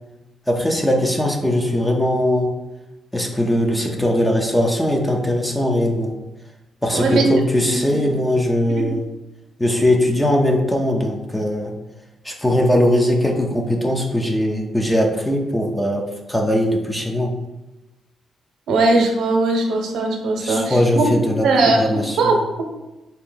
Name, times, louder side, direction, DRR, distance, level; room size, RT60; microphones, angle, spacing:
voice 1, 0.5-2.5 3.1-6.1 6.8-9.0 9.6-11.7 12.2-17.3 20.4-21.5 21.8-22.3, left 1 dB, 5° left, 1 dB, 0.6 m, -20 dB
voice 2, 6.9-7.2 7.7-8.0 8.7-8.9 18.7-21.1 21.4-22.6, right 2 dB, 85° right, 2 dB, 0.8 m, -20 dB
4.3 x 2.9 x 3.8 m, 1.0 s
cardioid pair, 145°, 0 cm